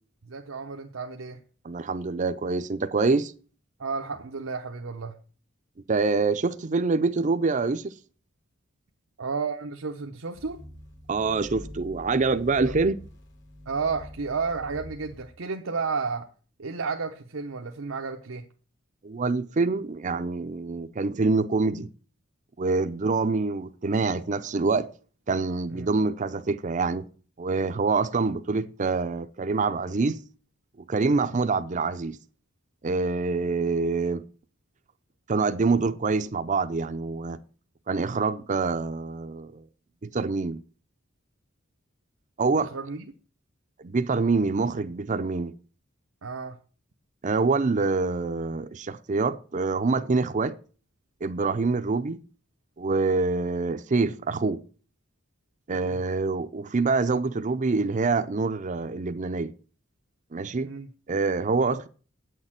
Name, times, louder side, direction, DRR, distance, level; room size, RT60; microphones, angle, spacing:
voice 1, 0.3-1.4 3.8-5.2 9.2-10.6 12.6-12.7 13.7-16.3 16.6-18.4 25.7-25.9 42.7-43.1 46.2-46.6 55.7-56.0 60.6-60.9, right 4 dB, 90° right, 0.8 m, -32 dB
voice 2, 1.6-3.3 5.9-7.9 11.1-13.0 19.0-21.9 22.6-24.9 25.3-27.0 27.4-30.2 30.9-32.2 32.8-34.2 35.3-37.4 37.9-39.6 40.0-40.6 42.4-42.7 43.8-45.5 47.2-50.6 51.2-52.2 52.8-54.6 55.7-59.5 60.3-60.7 61.1-61.9, right 4 dB, 40° right, 0.5 m, -26 dB
sound 1, 10.3-15.3, equal, 65° left, 2.7 m, -44 dB
8.5 x 6.6 x 7.4 m
head